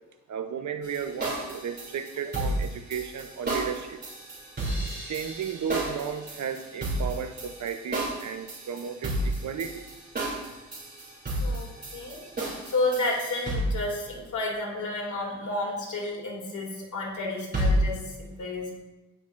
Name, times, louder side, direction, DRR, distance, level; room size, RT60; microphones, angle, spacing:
voice 1, 0.3-4.0 5.0-9.9, right 7 dB, 75° right, 7 dB, 0.8 m, -34 dB
sound 1, 0.8-13.9 17.5-17.9, right 1 dB, 35° right, 3.0 m, -31 dB
voice 2, 12.6-18.7, left 2 dB, 85° left, -1 dB, 2.6 m, -31 dB
16.5 x 5.8 x 2.6 m, 1.0 s
wide cardioid pair, 170°, 29 cm